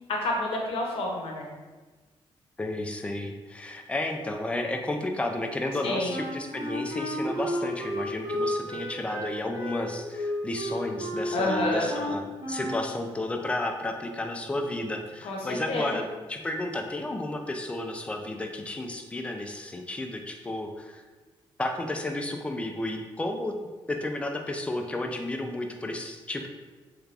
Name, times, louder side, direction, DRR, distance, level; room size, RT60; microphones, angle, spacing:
voice 1, 0.2-1.5 5.8-6.1 11.3-11.9 15.2-15.9, left 1 dB, 70° left, -1 dB, 0.7 m, -29 dB
voice 2, 2.6-21.0 21.6-23.6 23.9-26.5, left 2 dB, 10° left, 3 dB, 0.3 m, -32 dB
Wind instrument woodwind instrument, 6.1-12.9, equal, 55° right, 1.0 m, -32 dB
3.4 x 3.3 x 2.4 m, 1.3 s
cardioid pair, 145°, 10 cm